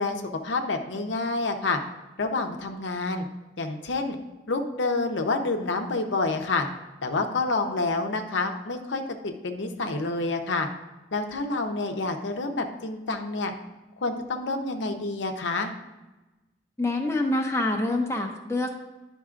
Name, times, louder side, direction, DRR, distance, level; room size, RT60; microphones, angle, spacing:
voice 1, 0.0-1.8 2.2-3.3 3.6-4.2 4.5-6.7 7.0-10.7 11.1-13.5 14.0-15.7, left 3 dB, 85° left, 4 dB, 0.7 m, -28 dB
voice 2, 16.8-18.7, left 2 dB, 15° left, 2 dB, 0.6 m, -26 dB
10.5 x 5.3 x 2.5 m, 1.1 s
head